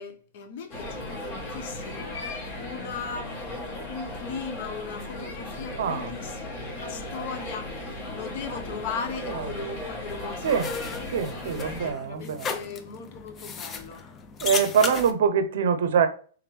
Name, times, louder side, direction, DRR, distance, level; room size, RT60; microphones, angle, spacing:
voice 1, 0.0-10.8 11.8-14.1, left 5 dB, 60° left, 0.7 m, -38 dB
sound 1, 0.7-11.9, left 1 dB, 40° left, 1.2 m, -36 dB
voice 2, 5.8-6.1 9.3-9.5 10.4-10.7 11.1-12.6 14.4-16.1, right 7 dB, 75° right, 0.5 m, -24 dB
sound 2, 10.1-15.1, left 5 dB, 20° left, 0.4 m, -35 dB
3.5 x 3.4 x 3.1 m
hypercardioid pair, 145°, 0 cm